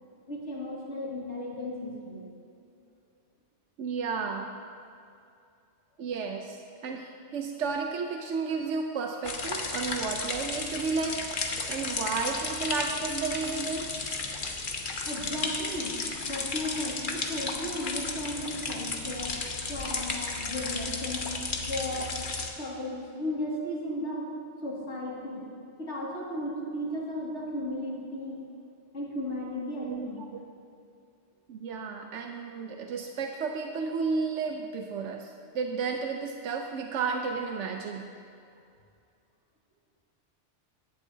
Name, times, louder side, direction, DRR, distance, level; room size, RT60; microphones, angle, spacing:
voice 1, 0.3-2.3 15.0-16.0 16.3-19.4 19.7-21.3 21.7-22.1 22.6-24.3 24.6-25.5 25.8-28.4 28.9-30.3, left 1 dB, 80° left, -4 dB, 2.5 m, -35 dB
voice 2, 3.8-4.5 6.0-11.4 11.7-13.9 20.7-20.8 29.8-30.4 31.5-38.0, right 5 dB, 90° right, 3 dB, 1.1 m, -32 dB
sound 1, 9.2-22.5, left 3 dB, 50° left, 1.1 m, -34 dB
16.5 x 11.5 x 2.8 m, 2.4 s
omnidirectional pair, 1.2 m